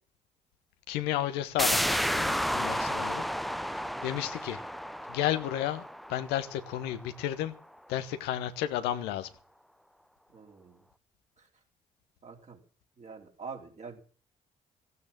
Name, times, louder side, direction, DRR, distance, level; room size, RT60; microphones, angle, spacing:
voice 1, 0.9-3.2 4.0-4.6 5.1-5.8 6.1-7.5 7.9-9.3, left 12 dB, 75° left, 1.1 m, -32 dB
sound 1, 1.6-7.1 7.4-7.5, equal, ahead, 0.6 m, -32 dB
voice 2, 10.3-10.9 11.4-11.5 12.2-12.6 13.0-14.0, right 5 dB, 40° right, 3.9 m, -45 dB
15.5 x 9.6 x 7.3 m
hypercardioid pair, 45°, 17 cm